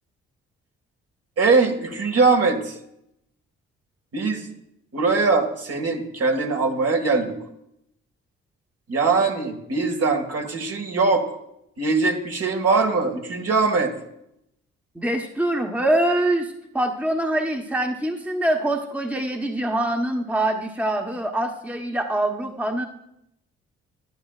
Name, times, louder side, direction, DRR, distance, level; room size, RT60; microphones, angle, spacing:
voice 1, 1.4-2.7 4.1-4.5 4.9-7.4 8.9-11.4 11.8-13.9, right 4 dB, 55° right, 3 dB, 1.9 m, -21 dB
voice 2, 14.9-22.9, right 1 dB, 5° right, 3 dB, 1.1 m, -24 dB
11.5 x 11.0 x 2.5 m, 0.78 s
hypercardioid pair, 50°, 30 cm